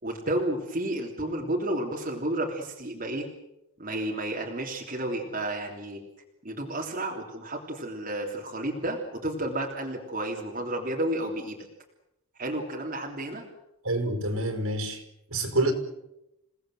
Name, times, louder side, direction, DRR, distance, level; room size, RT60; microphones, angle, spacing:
voice 1, 0.0-3.3 3.8-6.0 6.4-11.6 12.4-13.5, right 1 dB, 40° right, 0 dB, 3.3 m, -31 dB
voice 2, 13.8-15.0 15.3-15.7, right 1 dB, 75° right, 6 dB, 5.3 m, -27 dB
28.5 x 18.5 x 7.8 m, 0.89 s
head